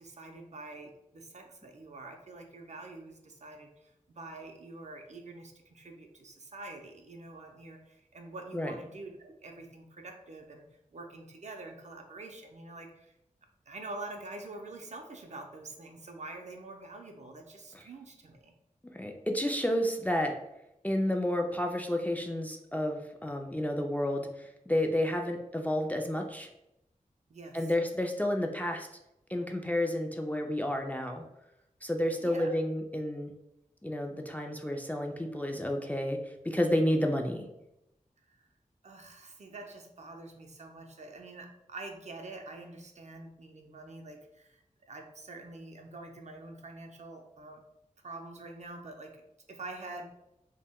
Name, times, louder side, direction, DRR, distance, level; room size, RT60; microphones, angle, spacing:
voice 1, 0.0-13.1 13.7-18.5 27.3-27.7 32.2-32.5 38.3-38.4 38.8-47.6 48.0-49.2 49.5-50.0, right 2 dB, 55° right, 4 dB, 0.5 m, -46 dB
voice 2, 18.9-20.3 20.8-26.5 27.5-28.9 29.3-31.2 31.8-33.3 33.8-36.2 36.4-37.4, left 1 dB, 10° left, 3 dB, 0.3 m, -30 dB
2.2 x 2.1 x 3.5 m, 0.84 s
wide cardioid pair, 55°, 14 cm